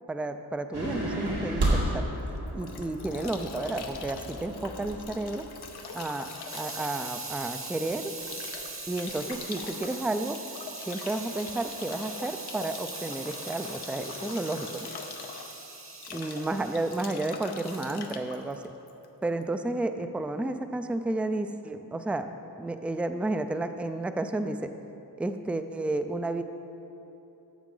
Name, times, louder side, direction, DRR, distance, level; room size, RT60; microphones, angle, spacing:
voice 1, 0.1-2.1 2.5-5.5 5.9-8.1 8.9-10.4 10.9-14.9 16.1-18.6 19.2-22.3 22.6-24.7 25.2-26.4, right 2 dB, 5° right, 8 dB, 0.3 m, -32 dB
sound 1, 0.7-5.6, right 1 dB, 85° right, 2.2 m, -32 dB
Bathtub (filling or washing) / Drip / Trickle dribble, 2.2-19.4, left 5 dB, 85° left, 0.8 m, -43 dB
Hiss, 5.3-17.1 17.6-18.0, right 3 dB, 35° right, 1.0 m, -41 dB
12.5 x 7.2 x 3.8 m, 2.9 s
wide cardioid pair, 85°, 38 cm